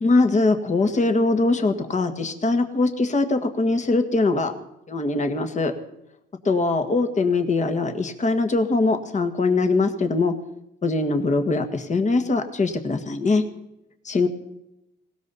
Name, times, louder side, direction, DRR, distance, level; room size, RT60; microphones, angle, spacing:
voice 1, 0.0-4.5 4.9-5.7 6.4-10.3 10.8-13.4 14.1-14.3, left 3 dB, 35° left, 7 dB, 1.8 m, -22 dB
19.5 x 17.5 x 4.2 m, 0.83 s
cardioid pair, 90°, 20 cm